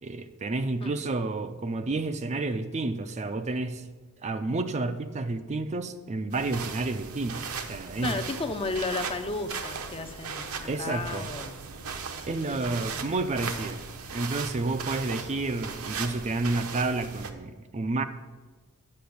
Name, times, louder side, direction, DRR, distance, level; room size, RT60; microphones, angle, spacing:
voice 1, 0.0-3.8 4.2-8.2 10.7-11.3 12.3-13.8 14.1-18.0, right 2 dB, 30° right, 9 dB, 0.5 m, -30 dB
sound 1, 6.3-17.3, right 5 dB, 70° right, 0.9 m, -37 dB
voice 2, 8.0-11.6 12.3-13.0, left 3 dB, 25° left, 7 dB, 0.6 m, -34 dB
8.5 x 6.0 x 8.0 m, 1.3 s
head